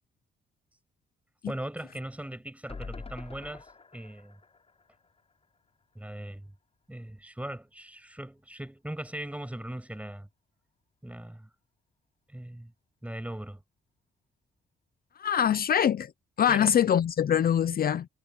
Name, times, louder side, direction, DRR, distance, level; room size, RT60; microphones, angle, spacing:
voice 1, 1.5-4.4 5.9-6.5 6.9-10.3 11.0-11.5 12.3-12.7 13.0-13.6 16.5-16.7, right 1 dB, 5° right, 7.5 m, -39 dB
sound 1, 2.7-5.9 6.3-6.4 6.6-6.7, left 4 dB, 30° left, 7.1 m, -46 dB
voice 2, 15.2-16.1 16.4-18.1, left 9 dB, 55° left, 0.8 m, -24 dB
cardioid pair, 85°, 19 cm